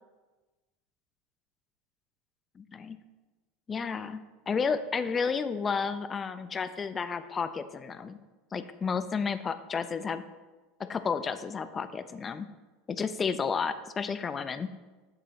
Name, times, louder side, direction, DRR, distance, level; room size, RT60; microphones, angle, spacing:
voice 1, 2.6-3.0 3.7-4.2 4.5-8.2 8.5-10.2 10.8-12.5 12.9-14.7, left 5 dB, 25° left, 11 dB, 0.5 m, -31 dB
8.3 x 3.8 x 5.9 m, 1.2 s
hypercardioid pair, 80°, 0 cm